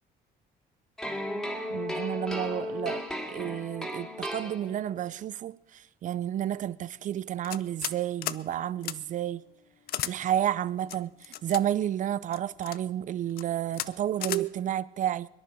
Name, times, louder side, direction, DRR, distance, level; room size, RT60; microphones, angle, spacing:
sound 1, 1.0-5.1, left 1 dB, ahead, 2.5 m, -35 dB
voice 1, 1.7-9.4 10.0-15.3, right 11 dB, 50° right, 0.5 m, -31 dB
sound 2, 7.4-8.0 8.2-8.4 8.8-9.0 9.9-10.1 10.9-11.6 12.3-12.8 13.3-13.4 13.7-13.9 14.2-14.4, left 13 dB, 65° left, 0.6 m, -34 dB
23.0 x 10.5 x 5.3 m
cardioid pair, 110°, 17 cm